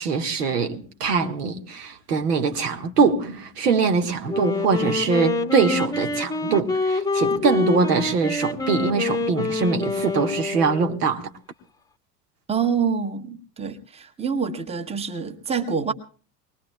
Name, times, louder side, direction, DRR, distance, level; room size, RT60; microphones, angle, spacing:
voice 1, 0.0-11.3, right 5 dB, 70° right, 1.6 m, -23 dB
Wind instrument woodwind instrument, 4.3-11.0, left 3 dB, 5° left, 1.0 m, -26 dB
voice 2, 12.5-15.9, right 6 dB, 10° right, 1.1 m, -26 dB
24.5 x 19.5 x 2.3 m
figure-of-eight pair, 75°, 49 cm